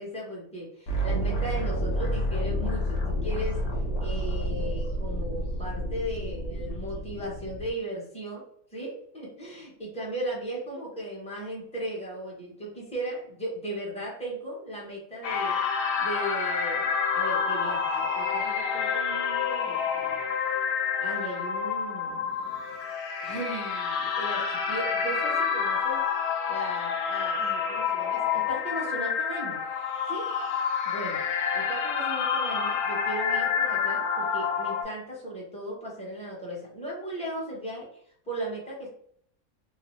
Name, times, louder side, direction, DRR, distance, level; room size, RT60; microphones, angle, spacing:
voice 1, 0.0-3.6 4.0-15.6 16.0-20.2 21.0-22.6 23.2-26.0 26.5-29.6 30.1-30.3 30.8-31.2 31.5-38.9, right 1 dB, 5° left, -4 dB, 0.7 m, -37 dB
sound 1, 0.9-7.7, equal, 55° left, 0.9 m, -29 dB
sound 2, 15.2-34.8, left 6 dB, 80° left, 1.1 m, -28 dB
2.8 x 2.0 x 3.1 m, 0.64 s
omnidirectional pair, 1.6 m